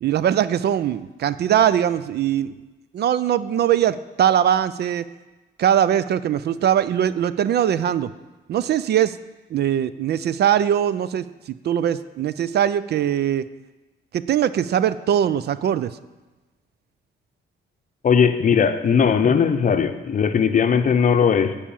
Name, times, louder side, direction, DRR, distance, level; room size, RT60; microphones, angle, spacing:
voice 1, 0.0-2.5 2.9-5.1 5.6-8.1 8.5-9.2 9.5-13.5 14.1-16.0, right 10 dB, 55° right, 15 dB, 0.4 m, -21 dB
voice 2, 18.0-21.5, left 7 dB, 40° left, 9 dB, 0.7 m, -18 dB
10.0 x 4.9 x 7.1 m, 1.1 s
cardioid pair, 90°, 20 cm